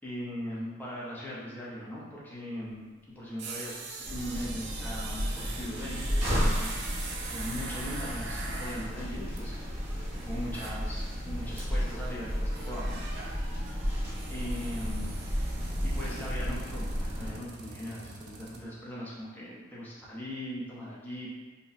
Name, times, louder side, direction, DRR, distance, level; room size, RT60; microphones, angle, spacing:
voice 1, 0.0-2.9 3.2-9.9 10.2-13.0 14.3-15.5 15.8-21.3, equal, 10° left, -7 dB, 0.6 m, -40 dB
sound 1, 2.6-2.7 3.1-10.9 11.2-11.3 11.6-18.6, right 3 dB, 60° right, 0.4 m, -43 dB
sound 2, 4.0-17.3, equal, 35° right, 0.9 m, -33 dB
2.7 x 2.1 x 4.0 m, 1.2 s
head